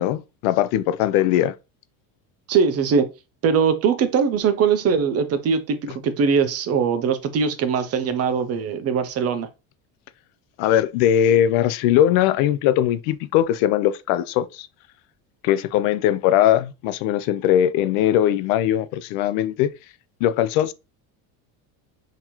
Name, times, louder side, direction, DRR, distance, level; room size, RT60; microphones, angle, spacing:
voice 1, 0.0-1.5 5.9-6.0 10.6-14.7 15.4-19.7 20.2-20.7, left 11 dB, 85° left, 0.5 m, -20 dB
voice 2, 2.5-3.1 3.4-9.5, right 6 dB, 35° right, 0.5 m, -21 dB
3.9 x 2.8 x 2.9 m
cardioid pair, 145°, 42 cm